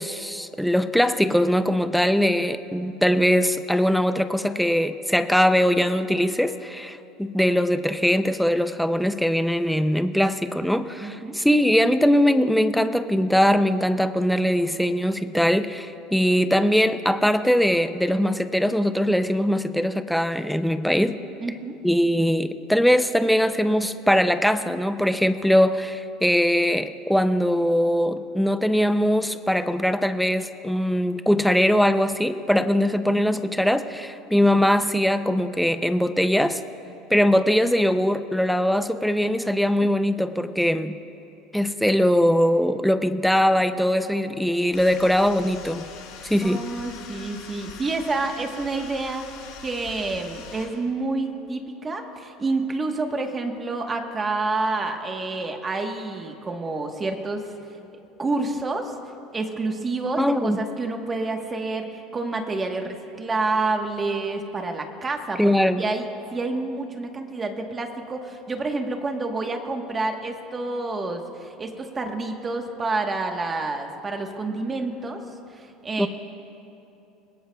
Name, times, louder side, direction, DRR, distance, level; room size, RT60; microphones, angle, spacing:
voice 1, 0.0-21.2 21.8-36.6 37.1-41.0 41.5-45.9 46.2-46.6 60.2-60.6 65.4-65.8 76.0-76.1, equal, ahead, 9 dB, 0.4 m, -21 dB
voice 2, 11.0-11.4 21.4-21.8 46.4-49.4 49.6-57.5 58.2-58.9 59.3-65.5 65.8-75.2 75.5-76.1, right 3 dB, 15° right, 4 dB, 1.1 m, -28 dB
sound 1, 44.7-50.7, left 6 dB, 75° left, 2.7 m, -43 dB
26.0 x 20.5 x 2.3 m, 2.9 s
cardioid pair, 165°, 0 cm